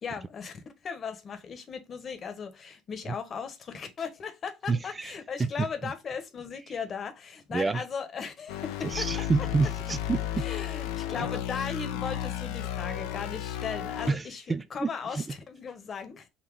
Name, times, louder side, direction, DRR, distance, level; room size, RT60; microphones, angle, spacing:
voice 1, 0.0-9.0 10.4-14.4 14.7-16.3, left 6 dB, 45° left, 1.1 m, -37 dB
voice 2, 4.7-5.1 5.4-5.9 7.5-7.8 8.8-10.5 14.1-15.4, right 4 dB, 25° right, 0.4 m, -29 dB
sound 1, 8.5-14.1, left 11 dB, 75° left, 0.6 m, -33 dB
4.2 x 2.7 x 4.6 m
hypercardioid pair, 60°, 0 cm